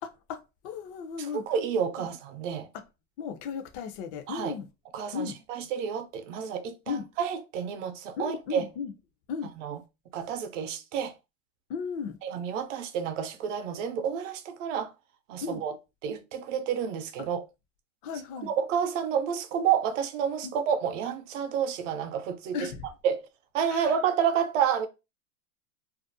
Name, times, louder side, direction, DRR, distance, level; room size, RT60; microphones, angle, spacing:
voice 1, 0.0-0.4 0.6-1.4 2.0-2.1 3.2-4.7 5.1-5.4 6.9-7.0 8.2-8.9 9.3-9.5 11.7-12.2 15.4-15.6 18.0-18.5 20.4-20.5 22.5-22.9 23.7-23.9, left 6 dB, 45° left, 0.5 m, -35 dB
voice 2, 1.2-2.7 4.3-4.5 4.9-8.7 9.6-9.8 10.1-11.1 12.2-14.9 15.3-15.8 16.0-17.4 18.4-22.7 23.0-23.2 23.5-24.9, right 8 dB, 70° right, 0.6 m, -29 dB
2.5 x 2.0 x 2.6 m
supercardioid pair, 130°, 40 cm